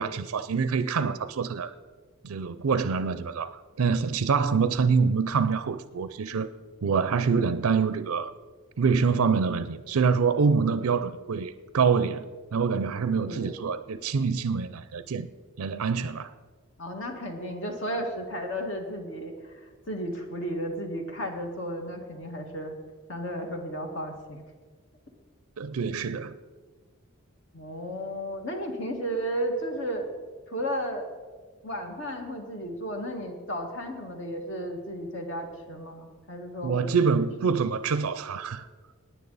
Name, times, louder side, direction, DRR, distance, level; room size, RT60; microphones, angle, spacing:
voice 1, 0.0-1.7 2.2-6.5 6.8-8.3 8.8-12.2 12.5-15.3 15.6-16.3 25.6-26.3 36.6-38.7, right 5 dB, 85° right, 0.5 m, -26 dB
voice 2, 13.1-13.6 16.8-22.8 23.1-24.4 27.5-30.1 30.5-31.1 31.6-37.5, equal, 60° left, 1.9 m, -34 dB
17.5 x 9.7 x 4.1 m
head